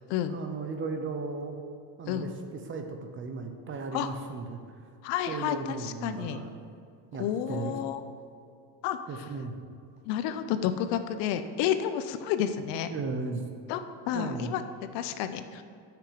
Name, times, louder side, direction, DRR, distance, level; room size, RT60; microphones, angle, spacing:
voice 1, 0.3-1.6 2.0-4.6 5.3-6.5 7.1-7.8 9.1-9.6 12.9-13.5 14.1-14.6, right 4 dB, 30° right, 6 dB, 0.7 m, -36 dB
voice 2, 5.0-6.4 7.2-8.0 8.8-9.0 10.1-12.9 13.7-14.6 14.9-15.6, left 10 dB, 70° left, 10 dB, 0.7 m, -30 dB
8.5 x 5.9 x 5.0 m, 2.4 s
cardioid pair, 145°, 44 cm